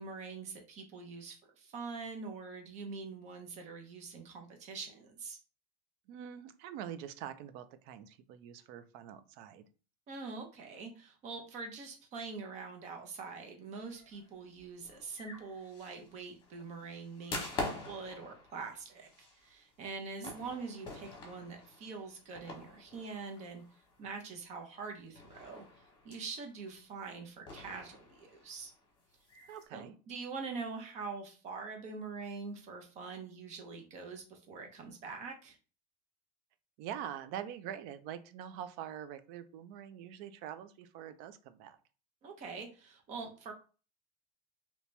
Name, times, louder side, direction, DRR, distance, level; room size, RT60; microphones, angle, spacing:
voice 1, 0.0-5.4 10.1-25.6 26.0-28.7 29.7-35.6 42.2-43.5, right 4 dB, 35° right, 4 dB, 0.9 m, -44 dB
voice 2, 6.1-9.6 20.2-20.3 29.5-29.9 36.8-41.8, right 10 dB, 55° right, 12 dB, 0.4 m, -44 dB
sound 1, 13.8-24.2 24.6-24.7 25.1-26.7 27.5-29.6, left 3 dB, 25° left, 1.2 m, -46 dB
2.9 x 2.8 x 3.2 m, 0.36 s
cardioid pair, 155°, 19 cm